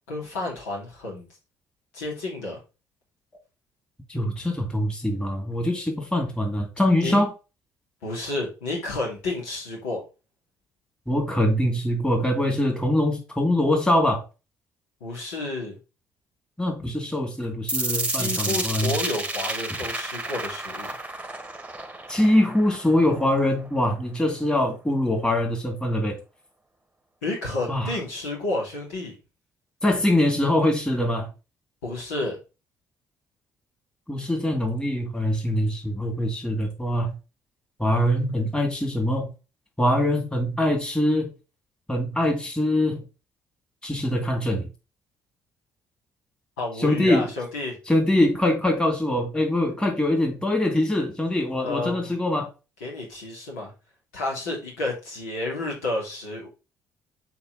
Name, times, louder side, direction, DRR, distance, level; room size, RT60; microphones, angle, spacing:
voice 1, 0.1-1.2 1.9-2.6 7.0-7.2 8.0-10.0 15.0-15.8 18.1-21.0 27.2-29.2 31.8-32.4 46.6-47.8 51.6-52.1 52.8-53.7 54.1-56.5, left 2 dB, 70° left, 2.6 m, -31 dB
voice 2, 4.1-7.3 11.1-14.2 16.6-18.9 22.1-26.2 27.7-28.0 29.8-31.3 34.1-37.2 37.8-39.3 39.8-41.3 41.9-43.0 43.8-44.7 46.8-47.3 47.9-52.5, left 1 dB, 10° left, 2.5 m, -23 dB
sound 1, 17.7-23.7, right 2 dB, 15° right, 1.3 m, -31 dB
7.0 x 4.5 x 4.0 m
figure-of-eight pair, 45°, 9 cm